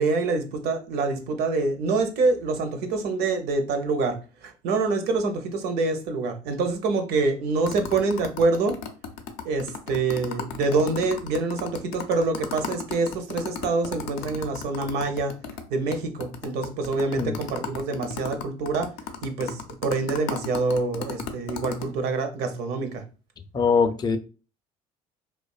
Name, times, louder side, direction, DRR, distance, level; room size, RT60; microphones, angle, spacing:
voice 1, 0.0-8.8 9.4-15.3 15.7-18.9 19.2-23.0, right 3 dB, 65° right, 7 dB, 0.6 m, -26 dB
sound 1, 7.7-15.6 15.9-16.0 16.2-21.9, left 7 dB, 80° left, 0.5 m, -34 dB
voice 2, 23.5-24.2, left 5 dB, 25° left, 8 dB, 0.4 m, -22 dB
2.5 x 2.2 x 2.3 m, 0.33 s
hypercardioid pair, 65°, 18 cm